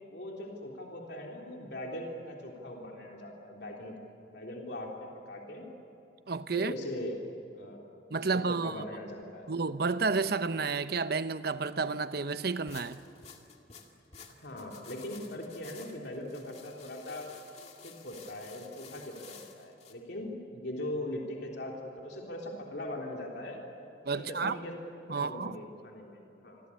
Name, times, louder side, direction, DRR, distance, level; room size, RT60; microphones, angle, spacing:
voice 1, 0.1-3.9 4.3-5.7 6.5-7.2 7.5-7.8 8.2-9.5 14.4-17.3 17.8-23.6 24.1-24.7 25.1-26.6, left 1 dB, 60° left, 3.5 m, -40 dB
voice 2, 6.3-6.7 8.1-8.8 9.5-13.0 24.0-24.6 25.1-25.6, right 4 dB, 55° right, 0.9 m, -31 dB
sound 1, 12.7-19.9, left 6 dB, 35° left, 2.3 m, -52 dB
28.0 x 23.5 x 8.6 m
head